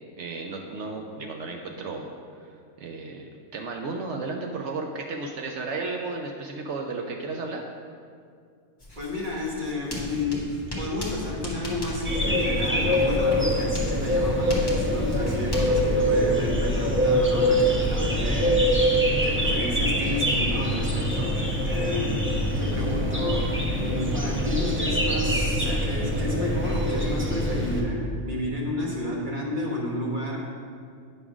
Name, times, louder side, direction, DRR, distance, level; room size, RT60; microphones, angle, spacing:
voice 1, 0.2-2.1 2.4-7.6 15.7-15.9, right 3 dB, 65° right, 2 dB, 0.8 m, -34 dB
Writing, 8.8-17.5, left 1 dB, 20° left, 1.3 m, -36 dB
voice 2, 9.0-30.4, left 1 dB, 40° right, -3 dB, 1.5 m, -31 dB
sound 1, 12.0-27.8, equal, 15° right, 0.5 m, -24 dB
9.0 x 3.6 x 6.0 m, 2.2 s
omnidirectional pair, 1.4 m